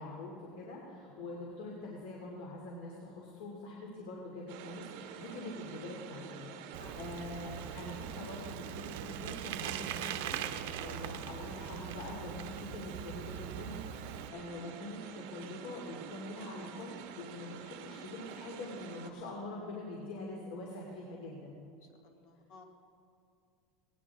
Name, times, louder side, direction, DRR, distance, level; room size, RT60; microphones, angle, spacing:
voice 1, 0.0-13.8 14.0-21.6, left 2 dB, 85° left, -2 dB, 2.8 m, -44 dB
sound 1, 4.5-19.1, right 7 dB, 60° right, 1.4 m, -48 dB
Bicycle, 6.7-14.3, right 10 dB, 80° right, 0.8 m, -41 dB
voice 2, 13.1-13.5 21.8-22.6, left 3 dB, 55° left, 2 dB, 2.1 m, -57 dB
19.0 x 19.0 x 3.6 m, 2.5 s
cardioid pair, 175°, 0 cm